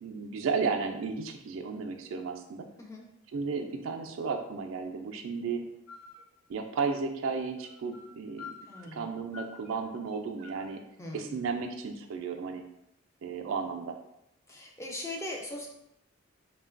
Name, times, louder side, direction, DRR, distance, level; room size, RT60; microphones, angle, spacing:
voice 1, 0.0-2.7 3.3-5.6 6.5-8.5 8.9-10.8 11.1-12.6 13.2-14.0, right 5 dB, 80° right, 5 dB, 0.3 m, -33 dB
sound 1, 5.9-6.2 7.5-8.1 8.4-9.1 9.3-10.8, left 5 dB, 40° left, 1.4 m, -48 dB
voice 2, 8.7-9.1 11.0-11.4 14.5-15.7, left 1 dB, 15° left, -1 dB, 0.4 m, -40 dB
3.1 x 2.2 x 2.4 m, 0.79 s
head